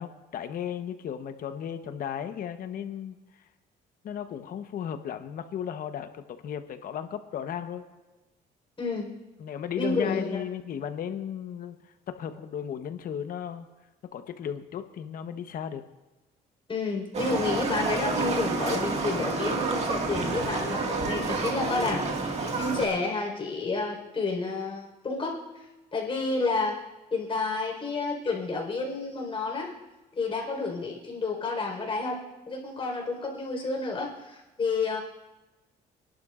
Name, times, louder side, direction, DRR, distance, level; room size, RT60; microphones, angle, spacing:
voice 1, 0.0-3.2 4.0-7.8 9.4-11.8 12.1-13.7 14.1-15.8, left 9 dB, 55° left, 9 dB, 1.0 m, -35 dB
voice 2, 8.8-9.1 9.8-10.4 16.7-25.7 25.9-26.8 27.1-29.7 30.2-35.0, left 3 dB, 30° left, -1 dB, 4.3 m, -30 dB
Livestock farm animals working animals, 17.1-22.9, right 3 dB, 40° right, 1.9 m, -29 dB
30.0 x 11.5 x 2.5 m, 1.1 s
cardioid pair, 110°, 17 cm